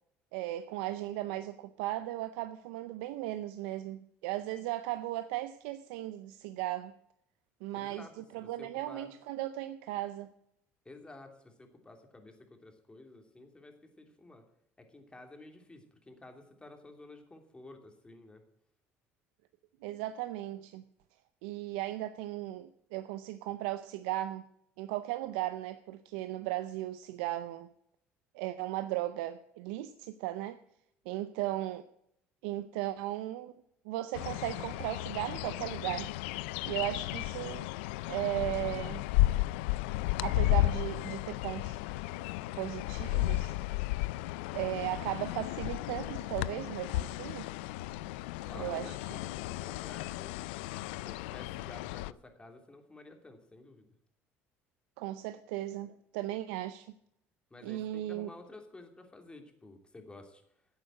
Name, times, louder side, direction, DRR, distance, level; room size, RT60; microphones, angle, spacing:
voice 1, 0.3-6.9 7.6-10.3 19.8-20.8 21.4-24.5 24.8-27.7 28.3-30.6 31.1-31.9 32.4-33.5 33.8-36.1 36.7-37.7 38.1-39.0 40.2-41.8 42.6-43.5 44.5-47.5 48.5-48.9 55.0-56.9 57.6-58.3, right 15 dB, 85° right, 0.6 m, -36 dB
voice 2, 7.7-9.1 10.8-14.4 14.8-18.4 48.4-50.5 51.0-53.9 57.5-60.4, left 2 dB, 15° left, 2.9 m, -52 dB
sound 1, 34.1-52.1, left 18 dB, 85° left, 0.3 m, -34 dB
11.5 x 8.1 x 7.5 m
supercardioid pair, 80°, 6 cm